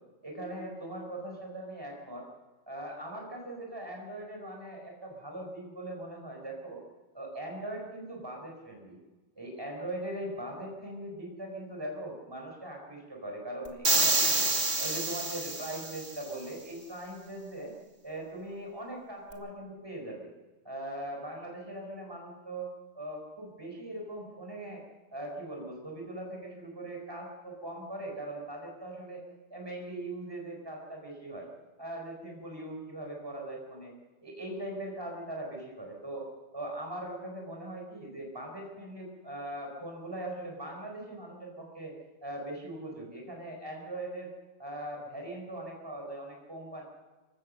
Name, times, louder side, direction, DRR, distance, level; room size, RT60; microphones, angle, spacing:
voice 1, 0.2-2.3 2.7-6.8 7.1-9.0 9.4-14.4 14.8-17.7 18.0-20.3 20.6-22.7 22.9-24.8 25.1-29.2 29.5-31.5 31.8-33.9 34.2-36.3 36.5-41.9 42.2-44.3 44.6-46.8, right 1 dB, 20° right, 0 dB, 4.6 m, -40 dB
sound 1, 13.8-16.1, right 2 dB, 65° right, 2.8 m, -27 dB
27.0 x 16.0 x 6.5 m, 1.3 s
omnidirectional pair, 1.2 m